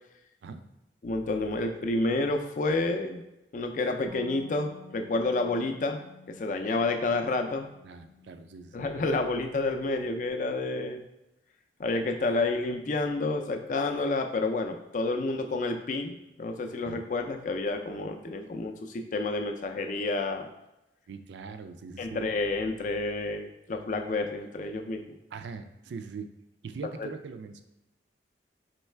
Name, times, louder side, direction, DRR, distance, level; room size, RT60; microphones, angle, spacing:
voice 1, 1.0-3.2 3.5-6.0 6.4-7.7 8.7-11.0 11.8-20.5 22.0-25.0 27.0-27.1, left 2 dB, 45° left, 5 dB, 0.4 m, -29 dB
Bass guitar, 4.1-10.3, left 2 dB, 5° right, 0.5 m, -52 dB
voice 2, 7.8-9.1 16.9-17.0 21.1-22.2 25.3-26.3 26.6-27.6, right 5 dB, 70° right, 9 dB, 0.4 m, -42 dB
4.5 x 3.1 x 3.2 m, 0.93 s
head